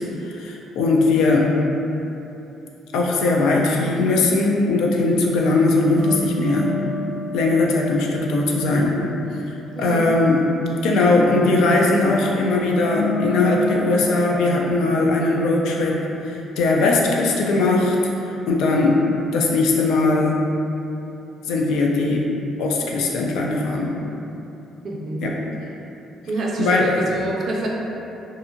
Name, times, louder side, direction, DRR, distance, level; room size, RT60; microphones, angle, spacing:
voice 1, 0.2-1.5 2.9-6.7 7.3-9.0 9.8-10.5 10.8-18.0 18.5-19.0 19.3-20.4 21.5-22.3 22.6-23.9 25.2-25.3 26.6-26.9, left 2 dB, 85° left, -1 dB, 0.3 m, -19 dB
sound 1, 6.0-10.1 12.8-14.3, left 2 dB, 10° left, 0.6 m, -30 dB
voice 2, 9.7-10.1 24.8-25.4 26.3-27.7, right 2 dB, 50° right, -2 dB, 0.4 m, -27 dB
2.6 x 2.4 x 2.5 m, 2.9 s
cardioid pair, 100°, 0 cm